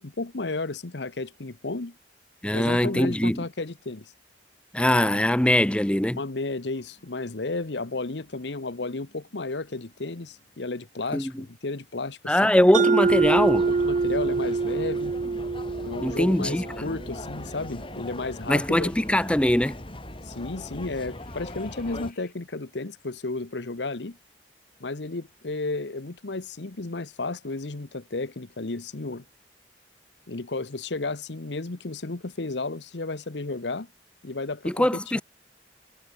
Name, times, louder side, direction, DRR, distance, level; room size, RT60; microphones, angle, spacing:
voice 1, 0.0-2.0 2.5-4.1 6.1-12.5 13.6-15.1 15.8-18.9 20.2-24.2 24.8-29.2 30.3-33.9 34.2-34.9 35.1-35.2, left 3 dB, 75° left, 1.1 m, -33 dB
voice 2, 2.4-3.4 4.7-6.2 11.1-11.4 12.3-13.7 16.0-16.6 18.5-19.8 34.6-35.2, left 1 dB, 5° left, 0.7 m, -22 dB
sound 1, 6.7-22.3, left 3 dB, 50° left, 6.8 m, -61 dB
Mallet percussion, 12.7-17.3, right 4 dB, 45° right, 0.4 m, -25 dB
sound 2, 13.0-22.1, left 1 dB, 30° left, 3.8 m, -39 dB
head